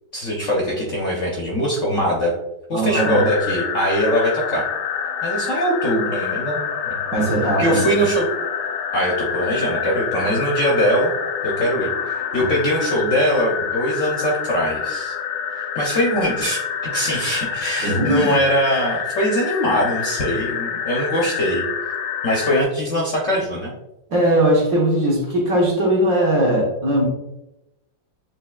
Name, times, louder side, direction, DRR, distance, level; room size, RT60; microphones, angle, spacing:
voice 1, 0.1-2.3 2.7-4.6 5.2-7.0 7.6-8.3 8.9-11.1 11.4-15.1 15.5-16.6 16.9-21.6 22.2-23.7, equal, 60° left, -2 dB, 0.8 m, -22 dB
voice 2, 2.7-3.3 7.1-7.8 17.8-18.4 24.1-27.1, right 1 dB, 55° right, -2 dB, 1.3 m, -19 dB
sound 1, 2.9-22.6, left 7 dB, 80° left, 1.2 m, -27 dB
6.6 x 3.0 x 2.3 m, 0.93 s
omnidirectional pair, 2.0 m